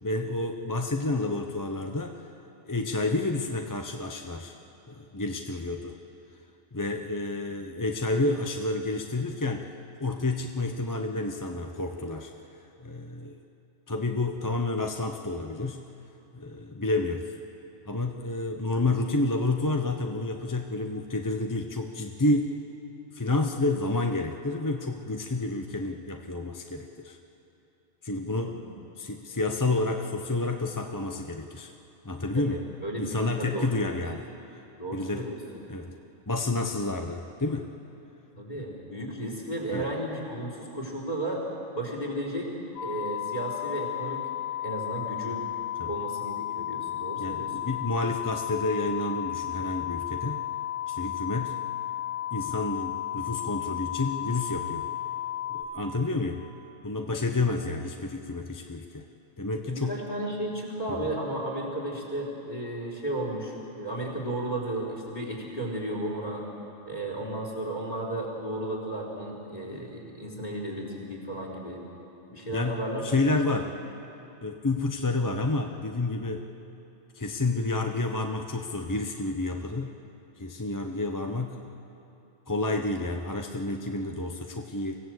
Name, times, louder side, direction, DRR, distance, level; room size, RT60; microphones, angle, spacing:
voice 1, 0.0-2.2 2.7-4.6 4.9-6.0 6.7-9.7 10.0-12.3 12.8-13.4 13.9-15.8 16.3-17.3 17.9-22.5 23.1-27.2 28.0-28.6 29.0-31.7 32.0-32.6 33.0-34.2 34.9-35.3 35.7-35.9 36.3-37.7 39.7-39.8 45.8-45.9 47.2-50.4 50.9-51.6 52.3-54.9 55.5-56.4 56.8-59.0 59.4-60.0 61.0-61.1 72.5-73.7 74.4-76.4 77.1-80.0 80.4-81.6 82.5-85.0, left 2 dB, 20° left, 4 dB, 0.7 m, -29 dB
voice 2, 32.3-34.0 34.8-35.4 38.4-41.4 41.7-42.5 42.8-44.2 44.6-45.4 45.8-47.6 59.7-66.4 66.9-71.8 72.3-73.0 73.5-73.6, right 1 dB, 40° left, -1 dB, 4.5 m, -34 dB
sound 1, 42.8-55.6, left 12 dB, 55° left, 2.5 m, -33 dB
25.0 x 17.0 x 8.0 m, 2.9 s
omnidirectional pair, 1.1 m